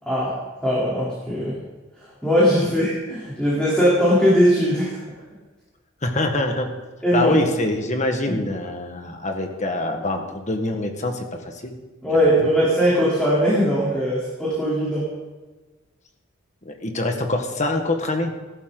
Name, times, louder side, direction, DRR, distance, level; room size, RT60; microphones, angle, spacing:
voice 1, 0.1-1.6 2.2-5.0 7.0-7.4 8.3-8.4 12.0-15.1, equal, 5° left, -9 dB, 3.6 m, -20 dB
voice 2, 6.0-6.7 7.1-11.7 12.1-12.5 16.6-18.3, left 2 dB, 35° left, 4 dB, 1.6 m, -25 dB
16.5 x 13.0 x 4.0 m, 1.2 s
head